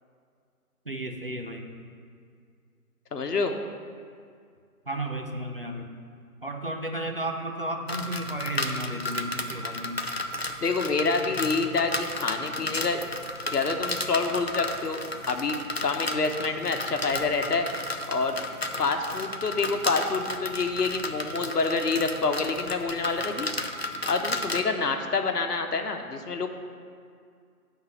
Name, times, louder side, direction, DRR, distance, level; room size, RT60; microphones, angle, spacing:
voice 1, 0.9-1.7 4.9-6.0 6.4-10.0, right 1 dB, 35° right, 3 dB, 0.5 m, -33 dB
voice 2, 3.1-3.6 10.6-13.0 13.5-15.0 15.3-17.7 18.1-18.4 18.8-23.5 24.1-26.5, left 4 dB, 75° left, 6 dB, 1.1 m, -27 dB
sound 1, 7.9-24.6, left 2 dB, 45° left, 0.4 m, -33 dB
10.5 x 4.1 x 6.5 m, 2.2 s
figure-of-eight pair, 165°, 47 cm